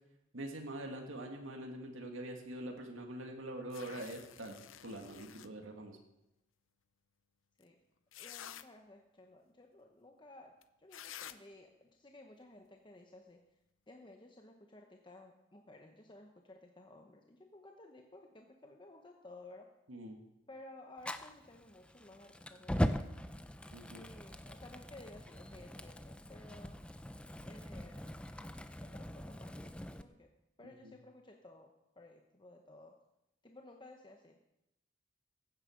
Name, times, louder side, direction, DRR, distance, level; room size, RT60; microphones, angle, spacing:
voice 1, 0.3-4.6 4.8-6.0 19.9-20.2 23.7-24.0 30.6-30.9, right 1 dB, 85° right, 2 dB, 2.1 m, -44 dB
sound 1, 3.7-5.5 7.6-7.7 8.1-8.6 10.6-10.7 10.9-11.4, left 10 dB, 80° left, 0.6 m, -50 dB
voice 2, 8.2-13.4 13.9-19.7 20.5-23.2 23.9-26.9 27.4-28.3 28.8-30.3 30.6-33.0 33.4-34.4, left 2 dB, 25° left, 3 dB, 0.9 m, -56 dB
Fire, 21.0-30.0, equal, 5° left, 0.5 m, -41 dB
15.5 x 8.9 x 6.5 m, 0.89 s
head